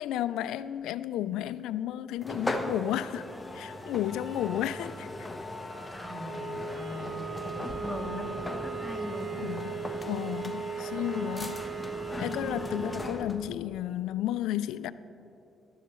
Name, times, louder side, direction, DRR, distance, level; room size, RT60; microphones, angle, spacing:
voice 1, 0.0-3.3 3.5-5.3 9.3-9.8 10.0-11.7 12.2-14.9, left 12 dB, 90° left, 0.3 m, -32 dB
sound 1, 2.2-13.5, left 1 dB, 15° left, 1.0 m, -38 dB
voice 2, 5.9-8.3 8.6-9.3, left 1 dB, 15° right, 2.7 m, -39 dB
sound 2, 6.2-13.2, right 6 dB, 55° right, 1.1 m, -38 dB
16.5 x 12.0 x 3.1 m
cardioid pair, 90°, 0 cm